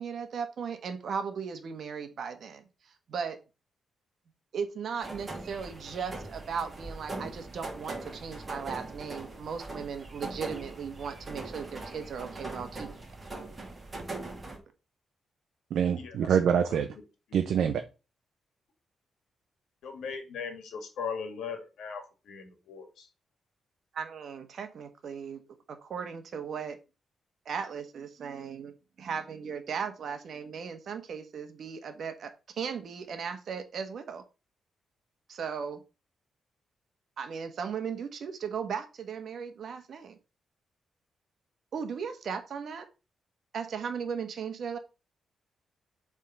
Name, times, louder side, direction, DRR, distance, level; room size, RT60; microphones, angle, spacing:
voice 1, 0.0-3.4 4.5-12.9 23.9-25.4 25.7-26.8 27.4-28.7 29.0-34.2 35.3-35.8 37.2-40.2 41.7-42.9 43.5-44.8, right 6 dB, 55° right, 1.2 m, -37 dB
sound 1, 5.0-14.6, right 2 dB, 20° right, 2.3 m, -41 dB
voice 2, 15.7-16.9 17.3-17.8, right 8 dB, 75° right, 0.6 m, -25 dB
voice 3, 19.8-23.1, left 6 dB, 90° left, 1.7 m, -39 dB
7.4 x 3.6 x 5.3 m
wide cardioid pair, 150°, 0 cm